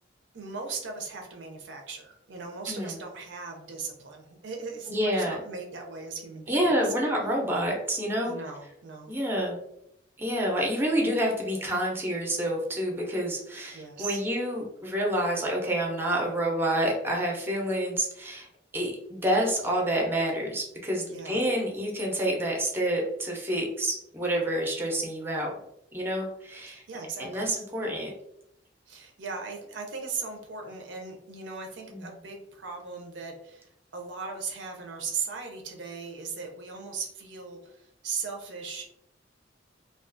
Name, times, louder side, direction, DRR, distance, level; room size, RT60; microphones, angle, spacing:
voice 1, 0.3-6.9 8.2-9.1 13.7-14.2 21.1-21.4 26.7-27.5 28.9-38.9, right 4 dB, 80° right, 2 dB, 0.5 m, -38 dB
voice 2, 2.7-3.0 4.9-5.4 6.5-8.3 9.1-9.6 10.2-18.5 18.7-25.5 25.9-26.8 27.2-28.1 31.9-32.1, right 1 dB, 15° right, -1 dB, 0.5 m, -28 dB
2.3 x 2.3 x 2.5 m, 0.78 s
head